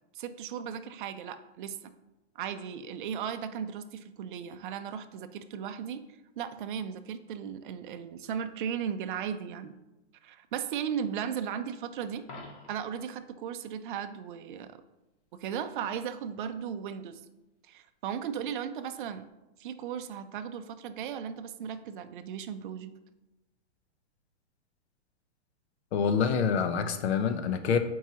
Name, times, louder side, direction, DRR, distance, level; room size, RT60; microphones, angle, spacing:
voice 1, 0.1-1.8 2.4-6.0 6.4-9.7 10.2-12.3 12.7-14.8 15.4-17.2 17.7-19.3 19.6-22.9, right 8 dB, 50° right, 9 dB, 0.5 m, -36 dB
Coin (dropping), 12.2-13.0 19.1-19.3, left 2 dB, 30° left, 1.1 m, -47 dB
voice 2, 25.9-27.8, left 6 dB, 70° left, 8 dB, 0.8 m, -26 dB
7.3 x 4.6 x 2.8 m, 1.0 s
hypercardioid pair, 155°, 34 cm